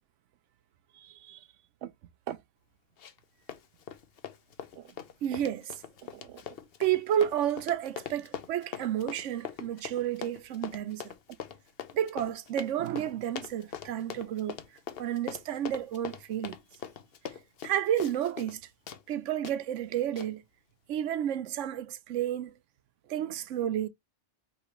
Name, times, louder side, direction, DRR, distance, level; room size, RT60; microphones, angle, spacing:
voice 1, 1.0-1.5 1.8-1.9 2.3-2.4 4.8-4.9 5.2-5.8 6.1-6.4 6.8-11.1 11.9-14.6 15.0-16.6 17.6-18.6 19.1-20.4 20.9-22.6 23.1-23.9, right 10 dB, 90° right, 1.0 m, -31 dB
Run, 3.0-3.2 3.5-18.6 18.9-19.0 19.4-19.6 20.2-20.3, left 8 dB, 60° left, 0.9 m, -42 dB
5.1 x 3.1 x 3.0 m
omnidirectional pair, 1.2 m